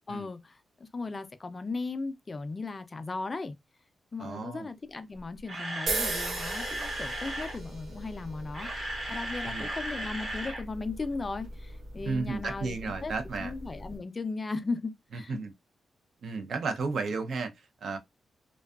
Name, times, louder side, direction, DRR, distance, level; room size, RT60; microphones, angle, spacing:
voice 1, 0.1-3.5 4.1-8.7 9.1-15.4, left 3 dB, 30° left, 0.4 m, -37 dB
voice 2, 4.2-4.7 9.4-9.7 12.0-13.5 15.1-15.5 16.2-18.0, right 4 dB, 65° right, 0.5 m, -33 dB
Camera, 5.2-7.6 8.3-10.6 10.9-11.0 11.5-11.6, right 1 dB, 40° right, 0.9 m, -36 dB
sound 1, 5.9-14.0, right 2 dB, 85° right, 0.9 m, -39 dB
2.5 x 2.2 x 2.3 m
wide cardioid pair, 125°, 0 cm